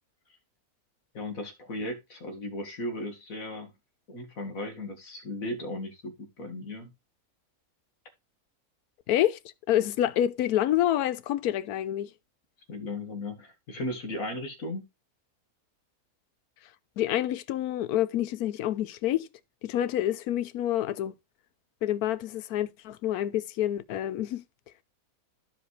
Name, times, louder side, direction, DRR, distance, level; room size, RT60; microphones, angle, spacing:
voice 1, 1.1-3.7 4.1-6.9 12.7-14.8, left 1 dB, 65° left, 2.1 m, -36 dB
voice 2, 9.1-9.4 9.7-12.1 17.0-19.3 19.6-21.1 21.8-24.4, left 12 dB, 85° left, 1.1 m, -27 dB
14.0 x 5.0 x 3.2 m
omnidirectional pair, 1.6 m